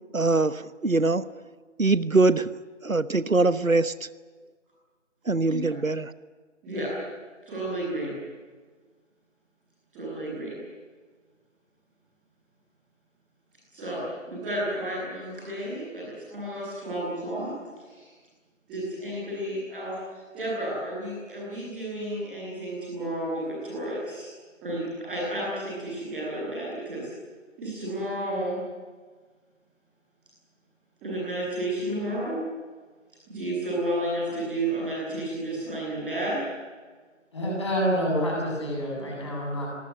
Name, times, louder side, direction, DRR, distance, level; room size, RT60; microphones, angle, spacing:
voice 1, 0.1-1.2 1.8-2.5 2.8-3.9 5.3-6.1, right 3 dB, 85° right, 15 dB, 1.3 m, -22 dB
voice 2, 7.4-8.1 9.9-10.6 13.7-14.0 14.3-18.1 18.7-24.3 24.6-27.1 27.6-28.6 31.0-32.4 33.3-36.4, right 1 dB, ahead, -17 dB, 2.0 m, -32 dB
voice 3, 37.3-39.7, equal, 20° left, -2 dB, 7.9 m, -27 dB
26.0 x 20.5 x 9.7 m, 1.5 s
figure-of-eight pair, 165°, 39 cm